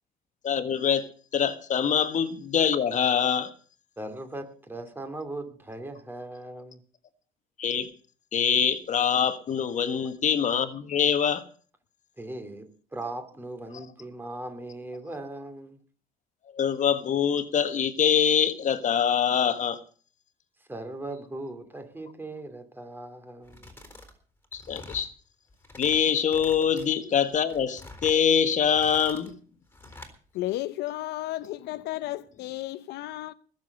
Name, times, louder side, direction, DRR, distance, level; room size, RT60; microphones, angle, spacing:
voice 1, 0.4-1.1 1.3-3.5 7.6-7.9 8.3-11.4 16.5-19.8 24.5-25.1 25.8-29.4, left 8 dB, 45° left, 1.5 m, -24 dB
voice 2, 4.0-6.8 12.2-15.8 20.7-23.7, right 2 dB, 10° right, 3.0 m, -39 dB
sound 1, 23.4-24.1 24.4-25.1 25.5-26.0 26.3-26.9 27.3-28.2 28.6-29.3 29.7-30.1, left 2 dB, 15° left, 3.9 m, -46 dB
voice 3, 30.3-33.3, left 16 dB, 80° left, 0.8 m, -33 dB
20.0 x 7.4 x 6.7 m
cardioid pair, 110°, 17 cm